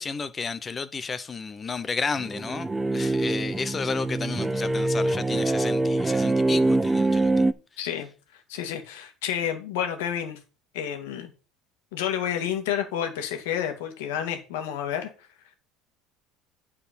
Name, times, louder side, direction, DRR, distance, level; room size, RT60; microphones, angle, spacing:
voice 1, 0.0-7.4, left 5 dB, 20° left, 0.8 m, -32 dB
sound 1, 2.2-7.5, right 2 dB, 15° right, 0.5 m, -24 dB
voice 2, 7.8-8.1 8.5-10.4 10.7-11.3 11.9-15.1, left 9 dB, 90° left, 2.0 m, -30 dB
9.1 x 4.8 x 5.3 m
supercardioid pair, 125°, 0 cm